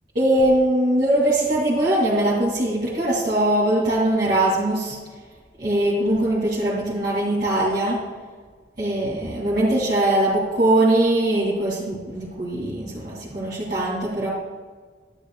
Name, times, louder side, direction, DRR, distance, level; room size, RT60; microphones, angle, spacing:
voice 1, 0.1-5.0 5.6-8.0 8.8-14.3, right 1 dB, 55° right, -9 dB, 2.7 m, -21 dB
13.0 x 11.5 x 2.3 m, 1.5 s
head